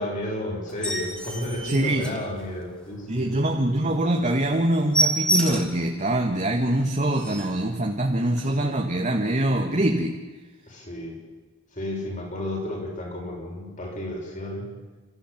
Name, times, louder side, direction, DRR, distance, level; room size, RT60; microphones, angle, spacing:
voice 1, 0.0-3.4 10.7-11.2 11.7-14.7, left 1 dB, 40° left, 0 dB, 6.3 m, -32 dB
sound 1, 0.7-2.8 3.2-3.4 3.8-3.9 4.2-4.3 4.5-5.9 6.4-6.5 6.8-6.9 7.1-7.6 8.4-8.5, right 1 dB, 5° left, 2.3 m, -28 dB
voice 2, 1.7-2.0 3.1-10.1, right 1 dB, 40° right, 2 dB, 1.7 m, -24 dB
29.5 x 14.0 x 8.7 m, 1.4 s
head